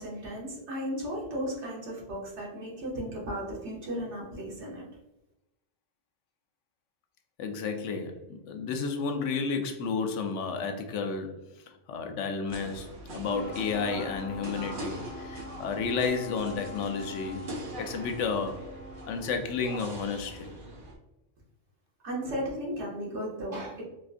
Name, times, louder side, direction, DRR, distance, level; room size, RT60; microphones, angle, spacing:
voice 1, 0.0-4.9 22.0-23.8, equal, 75° right, -4 dB, 1.3 m, -35 dB
voice 2, 7.4-17.5 17.8-18.6 19.1-20.5, left 5 dB, 80° left, 5 dB, 0.9 m, -32 dB
sound 1, 12.5-20.9, right 2 dB, 55° right, 0.7 m, -42 dB
Wind instrument woodwind instrument, 13.3-19.4, left 3 dB, 20° left, 0.8 m, -45 dB
4.2 x 2.4 x 2.4 m, 0.92 s
omnidirectional pair, 1.2 m